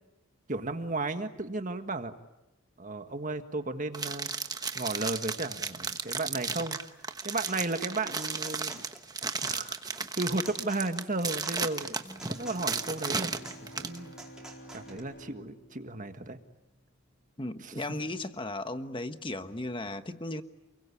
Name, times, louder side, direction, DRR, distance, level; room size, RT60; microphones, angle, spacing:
voice 1, 0.5-2.1 2.8-4.3 4.7-6.8 7.2-8.8 9.4-12.0 12.2-14.1 14.7-16.4 17.6-17.7, right 2 dB, 40° right, 8 dB, 1.7 m, -34 dB
sound 1, 3.9-14.0, right 4 dB, 20° right, 1.1 m, -34 dB
sound 2, 7.0-15.0, right 2 dB, 5° right, 4.4 m, -49 dB
Bowed string instrument, 12.0-17.1, equal, 45° left, 5.3 m, -51 dB
voice 2, 17.4-20.4, left 2 dB, 25° left, 9 dB, 1.3 m, -36 dB
29.5 x 22.0 x 8.5 m, 0.96 s
head